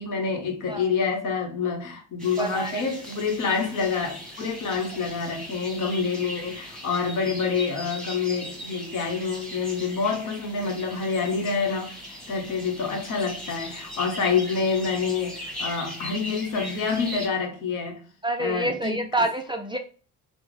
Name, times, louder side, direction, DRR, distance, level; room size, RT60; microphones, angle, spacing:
voice 1, 0.0-18.0 18.4-19.1, left 5 dB, 60° left, 1.0 m, -27 dB
sound 1, 2.2-17.3, equal, ahead, 1.3 m, -39 dB
voice 2, 2.4-2.8 18.2-19.8, right 2 dB, 15° right, 0.3 m, -27 dB
3.4 x 2.0 x 3.1 m
supercardioid pair, 70°, 35 cm